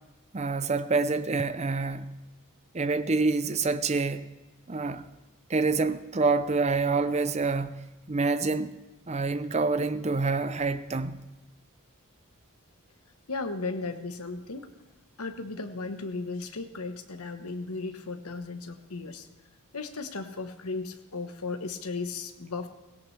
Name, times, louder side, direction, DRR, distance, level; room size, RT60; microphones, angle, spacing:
voice 1, 0.3-2.1 2.7-4.3 4.7-5.0 5.5-8.7 9.1-11.2, right 3 dB, 30° right, 0.6 m, -27 dB
voice 2, 13.3-14.7 15.2-19.3 19.7-22.7, left 3 dB, 80° left, 1.2 m, -35 dB
17.5 x 17.0 x 3.3 m
head